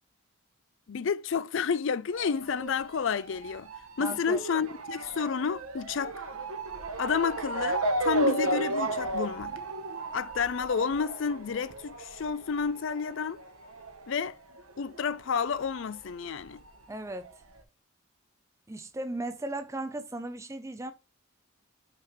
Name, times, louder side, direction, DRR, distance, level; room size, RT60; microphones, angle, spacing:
voice 1, 0.9-3.7 4.0-6.2 7.0-9.5 10.1-13.4 14.1-14.3 14.8-16.6, left 6 dB, 60° left, 0.4 m, -30 dB
Motor vehicle (road) / Siren, 2.1-15.2 15.4-16.6 17.2-17.3 17.6-17.7, right 2 dB, 85° right, 1.0 m, -34 dB
voice 2, 4.0-4.4 16.9-17.4 18.7-20.9, right 2 dB, 15° right, 0.5 m, -36 dB
5.8 x 3.3 x 5.7 m
head